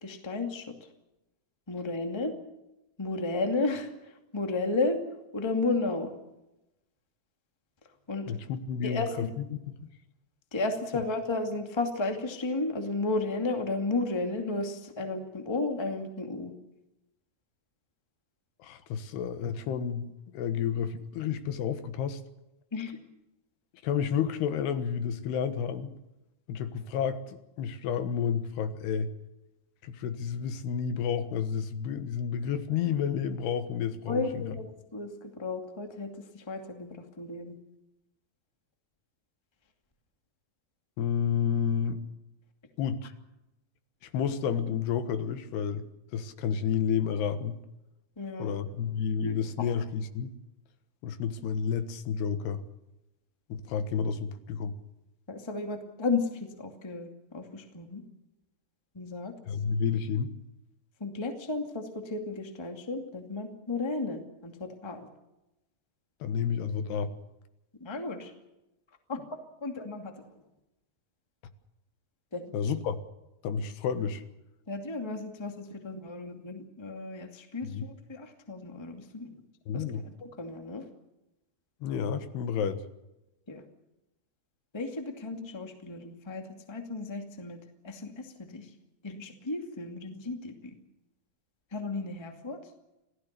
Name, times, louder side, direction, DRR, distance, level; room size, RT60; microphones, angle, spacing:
voice 1, 0.0-0.7 1.7-2.3 3.0-3.9 4.3-5.0 5.3-6.1 8.1-8.2 8.8-9.3 10.5-16.5 22.7-23.0 34.1-34.6 34.9-37.6 48.2-48.5 49.2-49.7 55.3-58.0 58.9-59.3 61.0-65.1 67.8-68.3 69.1-69.2 69.6-70.3 72.3-72.4 74.7-79.4 79.7-80.8 83.5-83.6 84.7-87.6 87.8-88.7 89.0-90.7 91.7-92.6, left 3 dB, 10° left, 5 dB, 1.4 m, -33 dB
voice 2, 8.3-9.9 18.6-20.1 20.3-22.2 23.8-26.0 26.5-29.1 29.8-34.6 41.0-42.0 42.8-43.1 44.0-45.9 46.1-47.6 48.4-50.4 51.0-52.6 53.5-54.8 59.5-60.3 66.2-67.1 72.5-73.0 73.4-74.2 77.6-77.9 79.7-80.0 81.8-82.8, left 7 dB, 80° left, 10 dB, 3.4 m, -30 dB
26.5 x 17.5 x 6.8 m, 0.94 s
omnidirectional pair, 4.6 m